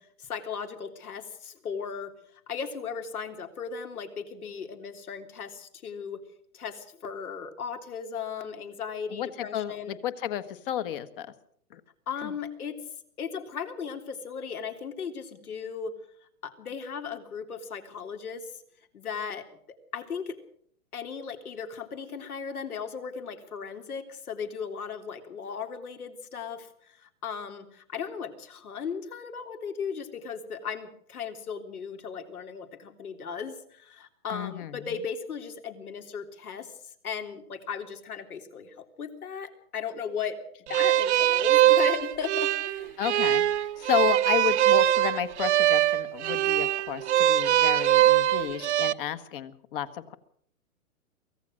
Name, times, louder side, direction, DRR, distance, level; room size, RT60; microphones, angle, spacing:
voice 1, 0.0-2.1 2.5-6.2 6.5-9.9 12.1-12.8 13.2-15.9 16.4-18.5 18.9-19.5 19.9-20.4 20.9-36.7 37.0-40.4 40.7-43.0, left 6 dB, 75° left, 7 dB, 3.6 m, -36 dB
voice 2, 9.1-11.3 11.7-11.8 12.2-12.3 34.3-34.9 43.0-50.1, left 10 dB, 35° left, 12 dB, 1.5 m, -32 dB
sound 1, 40.7-48.9, right 13 dB, 50° right, 0.9 m, -22 dB
24.0 x 17.0 x 6.4 m, 0.65 s
hypercardioid pair, 145°, 45 cm